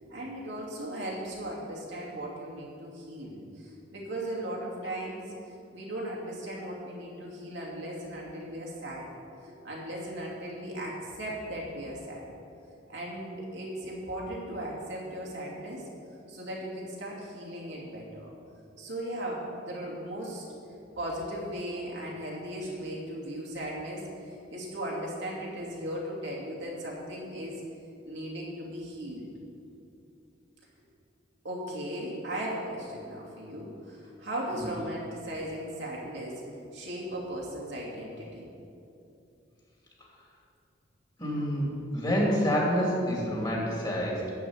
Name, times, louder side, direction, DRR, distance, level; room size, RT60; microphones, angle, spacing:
voice 1, 0.0-9.1 9.4-12.3 12.9-15.8 16.3-18.3 18.8-20.4 21.0-27.6 28.0-29.3 31.4-36.5 36.7-38.5, right 1 dB, 80° right, -4 dB, 2.7 m, -37 dB
voice 2, 41.2-41.7 41.9-44.3, equal, 25° left, -3 dB, 2.5 m, -27 dB
12.0 x 5.0 x 8.6 m, 2.7 s
head